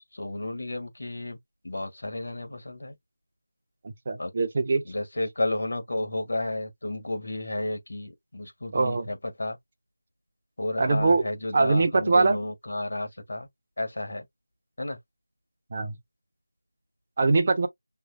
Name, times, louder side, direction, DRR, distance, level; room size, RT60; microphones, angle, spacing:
voice 1, 0.2-1.4 1.6-2.9 4.2-4.3 4.9-9.6 10.6-13.5 13.8-14.2 14.8-15.0, left 2 dB, 50° left, 1.9 m, -32 dB
voice 2, 3.8-4.8 8.7-9.1 10.8-11.2 11.5-12.4 15.7-15.9 17.2-17.7, right 3 dB, 25° right, 0.8 m, -22 dB
6.4 x 3.3 x 2.3 m
figure-of-eight pair, 170°, 0 cm